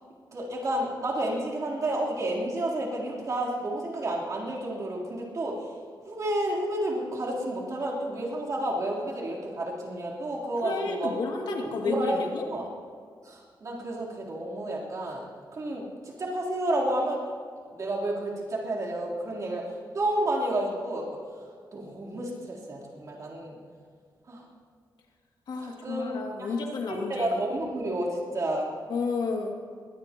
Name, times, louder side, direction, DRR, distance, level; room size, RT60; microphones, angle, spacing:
voice 1, 0.3-5.7 6.1-11.1 11.6-12.2 12.5-12.6 13.2-15.2 15.5-17.2 17.7-19.6 19.9-21.2 21.7-23.6 24.3-24.4 25.6-26.5 26.9-28.7, right 1 dB, 45° right, -4 dB, 3.7 m, -31 dB
voice 2, 10.6-12.5 25.5-27.4 28.9-29.5, left 4 dB, 90° left, 0 dB, 2.5 m, -31 dB
22.5 x 18.5 x 3.0 m, 2.1 s
wide cardioid pair, 145°, 8 cm